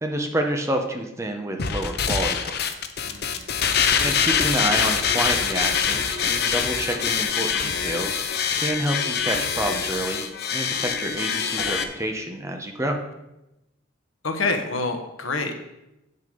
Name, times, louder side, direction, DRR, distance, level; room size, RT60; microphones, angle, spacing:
voice 1, 0.0-2.6 4.0-10.3 10.5-13.0, right 1 dB, 15° right, 3 dB, 0.8 m, -28 dB
sound 1, 1.6-11.8, left 7 dB, 50° left, 0.7 m, -24 dB
sound 2, 6.6-13.0, left 1 dB, 15° left, 3.4 m, -46 dB
voice 2, 14.2-15.5, left 3 dB, 80° left, 6 dB, 1.1 m, -26 dB
8.3 x 6.7 x 5.2 m, 0.93 s
head